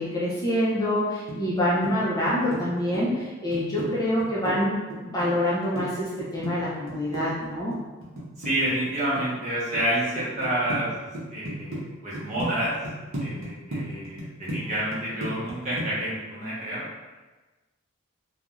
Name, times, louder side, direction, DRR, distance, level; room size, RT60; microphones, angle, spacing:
voice 1, 0.0-4.7 5.0-7.7, left 1 dB, 20° left, -8 dB, 0.4 m, -26 dB
sound 1, 1.3-1.9 2.3-3.9 4.2-5.9 6.2-8.9 9.2-9.8 10.2-10.8 11.1-11.8 12.1-12.5 12.8-15.5 15.8-16.0, right 1 dB, 75° right, 0.8 m, -34 dB
voice 2, 8.4-12.7 13.2-16.8, right 1 dB, 35° right, -8 dB, 0.9 m, -29 dB
2.4 x 2.2 x 3.0 m, 1.2 s
head